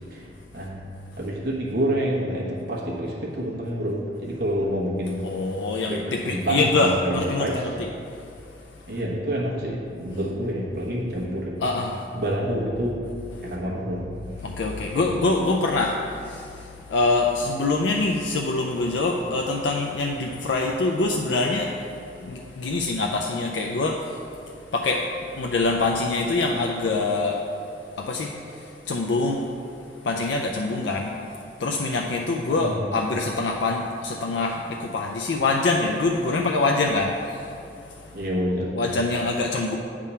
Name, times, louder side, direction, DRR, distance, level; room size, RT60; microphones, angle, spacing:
voice 1, 0.1-0.8 1.2-5.2 5.8-7.6 8.9-11.6 12.1-13.0 13.4-14.1 14.9-15.3 32.5-32.8 38.1-38.7, equal, 65° right, -5 dB, 1.1 m, -28 dB
voice 2, 5.2-7.9 11.6-12.0 14.4-16.5 16.9-21.7 22.2-24.0 24.7-25.0 25.3-27.4 28.0-28.4 28.9-29.4 30.0-31.1 31.6-37.4 38.7-39.8, left 3 dB, 85° left, 1 dB, 0.4 m, -24 dB
8.4 x 3.8 x 5.4 m, 2.6 s
head